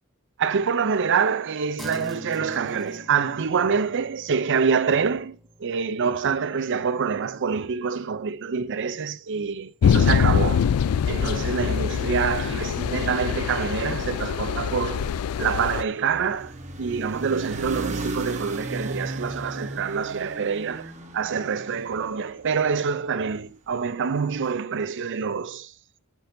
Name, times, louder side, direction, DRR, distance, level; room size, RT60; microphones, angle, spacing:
voice 1, 0.4-10.7 11.1-15.1 15.4-16.5 16.8-25.7, right 6 dB, 55° right, 0.5 m, -26 dB
sound 1, 1.8-11.5, left 1 dB, ahead, 0.9 m, -47 dB
sound 2, 9.8-15.8, left 7 dB, 75° left, 0.3 m, -24 dB
sound 3, 14.6-22.9, right 2 dB, 35° right, 1.0 m, -36 dB
10.5 x 6.0 x 2.7 m
head